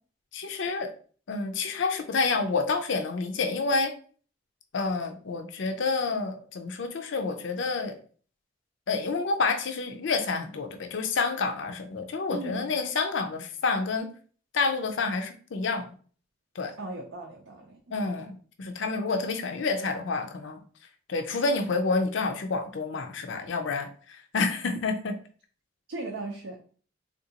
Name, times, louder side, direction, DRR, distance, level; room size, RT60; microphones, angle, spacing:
voice 1, 0.3-0.9 1.3-4.0 4.7-8.0 8.9-14.1 14.5-15.9 16.6-16.7 17.9-20.6 21.1-25.2, left 4 dB, 65° left, 6 dB, 0.5 m, -29 dB
voice 2, 12.3-12.7 16.8-17.9 25.9-26.6, right 2 dB, 70° right, -1 dB, 0.6 m, -37 dB
3.6 x 2.5 x 2.7 m, 0.43 s
head